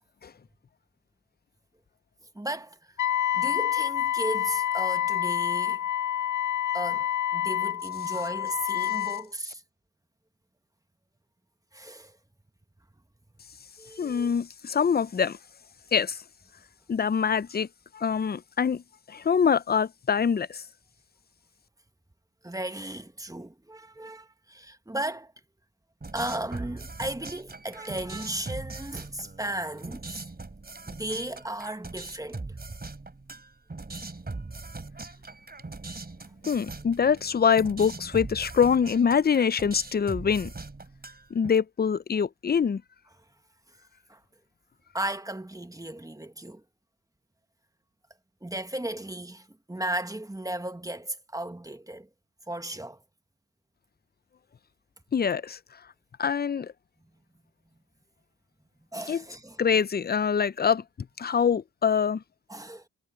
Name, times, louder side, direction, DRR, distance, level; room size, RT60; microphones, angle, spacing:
voice 1, 2.4-2.9 3.3-5.8 6.7-9.6 11.7-12.2 13.8-14.3 22.4-25.3 26.1-30.2 30.9-32.6 44.1-44.2 44.9-46.6 48.4-52.1 52.5-53.0 58.9-59.6 62.5-62.9, right 1 dB, 10° right, 1.7 m, -35 dB
Wind instrument woodwind instrument, 3.0-9.2, left 11 dB, 60° left, 2.0 m, -28 dB
voice 2, 14.0-15.4 15.9-16.2 16.9-17.7 17.9-18.8 19.1-20.6 36.4-40.5 41.3-42.8 55.1-55.6 56.2-56.7 59.1-59.2 59.6-60.8 61.2-62.2, left 6 dB, 30° left, 0.5 m, -24 dB
sound 1, 26.0-41.5, right 3 dB, 25° right, 4.9 m, -40 dB
cardioid pair, 65°, 34 cm